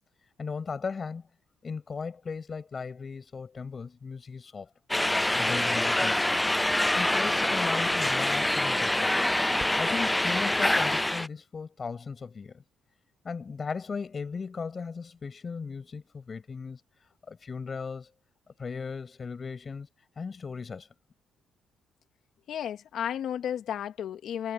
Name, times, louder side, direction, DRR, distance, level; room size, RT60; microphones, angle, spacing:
voice 1, 0.4-1.2 1.6-4.7 5.4-6.3 6.9-9.3 9.8-12.6 13.2-16.8 17.3-18.1 18.6-19.9 20.2-20.9, left 5 dB, 40° left, 7.2 m, -37 dB
sound 1, 4.9-11.3, left 1 dB, 10° left, 0.5 m, -25 dB
voice 2, 22.5-24.5, left 9 dB, 70° left, 2.0 m, -33 dB
cardioid pair, 90°, 0 cm